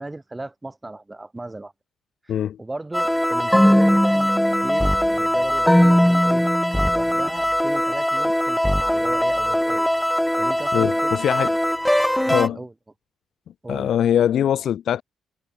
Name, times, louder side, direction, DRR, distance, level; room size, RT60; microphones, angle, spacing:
voice 1, 0.0-1.7 2.2-6.4 6.9-9.9 10.4-11.3 12.3-12.7 13.6-13.9, right 2 dB, 15° right, 5.6 m, -36 dB
voice 2, 2.3-2.6 10.7-11.6 11.9-12.0 12.3-12.6 13.7-15.0, left 10 dB, 65° left, 0.6 m, -22 dB
sound 1, 2.9-12.5, equal, 5° left, 0.4 m, -20 dB
cardioid pair, 90°, 0 cm